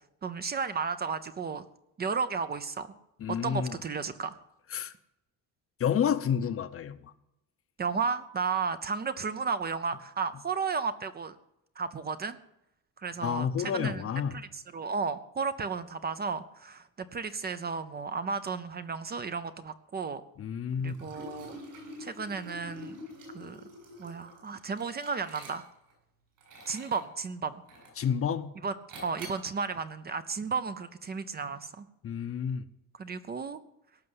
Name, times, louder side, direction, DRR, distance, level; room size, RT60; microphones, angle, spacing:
voice 1, 0.2-1.6 2.0-2.9 3.3-4.4 7.8-11.4 11.8-12.4 13.0-14.0 14.3-20.2 20.8-21.6 22.0-23.0 23.3-23.6 24.0-25.7 26.7-27.6 28.6-28.7 29.0-31.9 33.0-33.6, right 5 dB, 25° right, 12 dB, 0.6 m, -33 dB
voice 2, 3.2-3.7 4.7-4.9 5.8-7.1 13.2-14.4 20.4-20.9 28.0-28.5 32.0-32.6, left 8 dB, 40° left, 12 dB, 0.7 m, -30 dB
Liquid, 20.9-25.9 26.4-27.1 27.7-28.2 28.9-29.5, left 1 dB, 65° right, 8.0 m, -46 dB
18.0 x 6.6 x 9.7 m, 0.85 s
cardioid pair, 175°, 35 cm